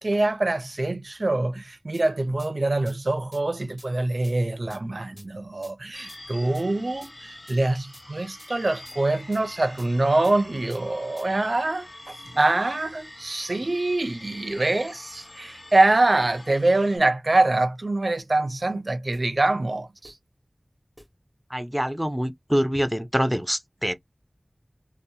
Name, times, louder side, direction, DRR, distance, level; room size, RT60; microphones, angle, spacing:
voice 1, 0.0-20.1, right 2 dB, 65° right, 0.4 m, -24 dB
sound 1, 1.9-2.0 2.4-2.5 2.9-3.0 3.3-3.4 3.8-3.9 4.2-4.3 4.7-4.8 5.2-5.3 5.6-5.7 6.1-6.2 6.5-6.6 7.0-7.1 7.5-7.6 7.9-8.0 8.4-8.5 8.9-9.0 9.3-9.4 9.8-9.9 10.2-10.3 10.7-10.8 11.2-11.3 19.1-19.2 20.0-20.1 21.0-21.1, equal, 20° left, 1.0 m, -49 dB
sound 2, 5.9-17.0, left 1 dB, 50° left, 0.8 m, -45 dB
voice 2, 21.5-23.9, equal, 5° right, 0.4 m, -25 dB
2.6 x 2.0 x 2.7 m
wide cardioid pair, 50°, 0 cm